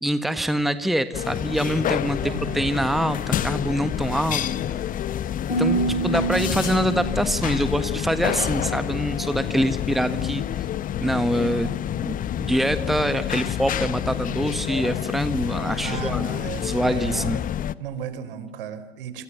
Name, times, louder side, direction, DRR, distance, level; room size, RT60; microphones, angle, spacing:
voice 1, 0.0-4.8 5.6-10.7 11.0-11.7 12.0-16.2 16.6-17.4, right 1 dB, ahead, 12 dB, 1.4 m, -25 dB
sound 1, 1.1-17.8, left 11 dB, 25° left, 1.0 m, -28 dB
voice 2, 2.2-2.7 15.8-17.3 17.8-19.2, right 7 dB, 65° right, 12 dB, 4.1 m, -35 dB
Harp, 5.5-9.6 9.9-10.4 11.0-11.3, right 3 dB, 90° left, 7.3 m, -30 dB
28.0 x 26.5 x 7.0 m, 1.1 s
figure-of-eight pair, 85°, 30 cm